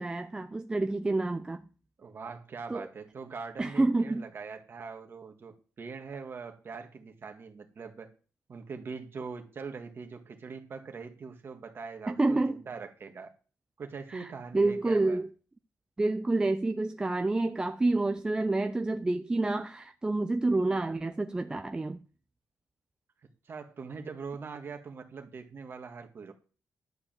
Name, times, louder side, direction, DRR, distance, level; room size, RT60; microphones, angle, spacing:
voice 1, 0.0-1.7 2.7-2.9 3.6-4.2 12.1-12.6 14.1-14.3 14.5-15.3 16.0-22.0, right 2 dB, 15° right, 0.4 m, -28 dB
voice 2, 2.0-8.1 8.5-13.3 13.8-15.2 23.5-26.3, right 5 dB, 40° right, 1.7 m, -42 dB
11.0 x 4.8 x 7.5 m
wide cardioid pair, 155°, 6 cm